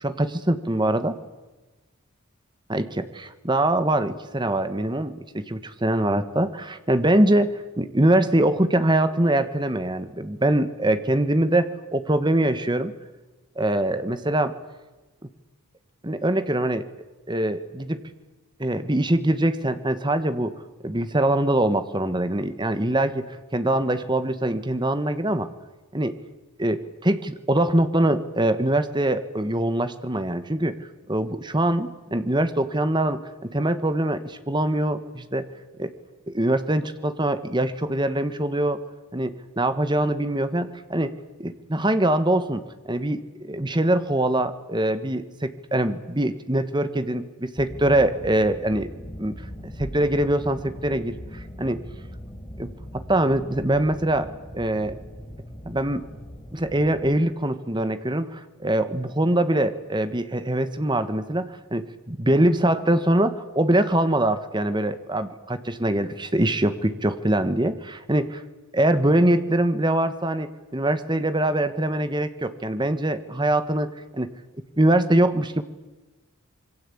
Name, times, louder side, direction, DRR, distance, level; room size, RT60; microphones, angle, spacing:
voice 1, 0.0-1.1 2.7-12.9 13.6-14.6 16.0-16.8 17.3-18.0 18.6-20.5 20.8-23.3 23.5-25.5 25.9-26.1 26.6-30.7 31.1-35.5 35.8-35.9 36.3-38.8 39.1-41.1 41.4-48.9 49.2-49.3 49.8-51.8 52.6-52.7 52.9-54.3 54.5-55.0 55.6-56.0 56.5-68.4 68.7-74.3 74.8-75.6, right 1 dB, 20° right, 11 dB, 1.3 m, -23 dB
sound 1, 47.6-57.1, equal, 10° left, 6.4 m, -40 dB
26.5 x 23.0 x 8.6 m, 1.1 s
head